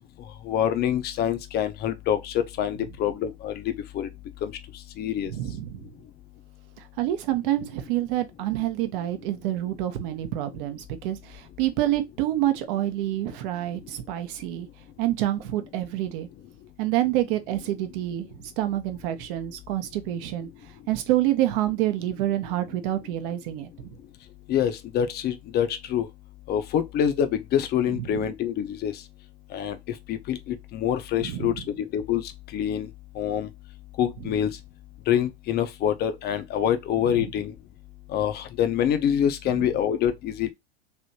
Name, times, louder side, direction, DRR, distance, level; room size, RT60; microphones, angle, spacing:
voice 1, 0.5-4.1 4.4-4.5 5.0-5.3 24.5-26.1 26.5-28.9 29.5-29.8 30.1-32.2 32.5-32.9 33.2-33.5 34.0-34.5 35.1-37.5 38.1-40.5, left 9 dB, 30° left, 0.7 m, -26 dB
voice 2, 5.2-5.8 6.8-14.7 15.0-16.3 16.8-20.5 20.9-24.0 27.9-28.2 31.2-31.6 37.1-37.3 39.5-39.7, right 14 dB, 50° right, 0.9 m, -27 dB
3.3 x 2.9 x 2.7 m
hypercardioid pair, 95°, 34 cm